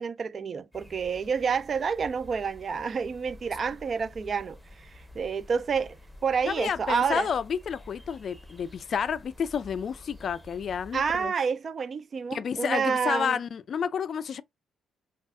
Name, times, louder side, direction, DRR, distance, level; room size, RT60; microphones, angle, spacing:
voice 1, 0.0-4.9 5.1-6.0 6.2-7.3 10.9-13.4, right 6 dB, 45° right, 0.3 m, -29 dB
sound 1, 0.7-11.3, left 1 dB, 10° right, 0.7 m, -50 dB
voice 2, 6.5-11.3 12.3-14.4, left 7 dB, 55° left, 0.3 m, -30 dB
2.4 x 2.3 x 3.6 m
cardioid pair, 90°, 0 cm